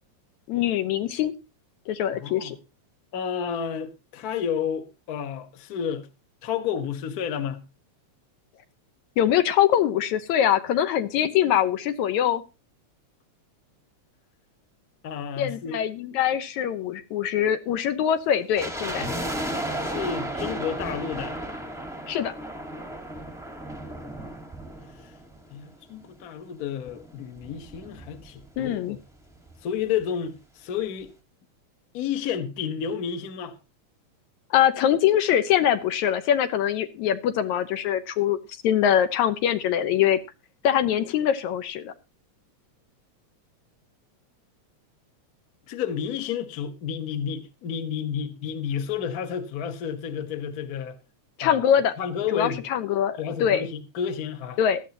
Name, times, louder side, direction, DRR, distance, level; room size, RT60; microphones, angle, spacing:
voice 1, 0.5-1.3 1.9-2.6 9.2-12.4 15.4-19.0 22.1-22.3 28.6-29.0 34.5-38.4 38.6-40.2 40.6-41.9 51.4-51.9 52.3-53.7 54.6-54.8, left 10 dB, 80° left, 2.3 m, -23 dB
voice 2, 2.2-2.6 3.1-6.1 6.4-7.6 15.0-15.8 19.0-19.2 19.8-21.4 25.5-29.0 29.6-31.1 31.9-33.5 45.7-51.0 51.4-51.7 52.0-52.7 53.2-54.6, left 8 dB, 50° left, 1.1 m, -31 dB
sound 1, 18.6-25.8 26.1-26.2 26.9-28.7 28.9-29.0 29.3-29.6 30.0-30.1, right 1 dB, 5° right, 0.6 m, -34 dB
16.5 x 12.5 x 2.9 m
omnidirectional pair, 3.4 m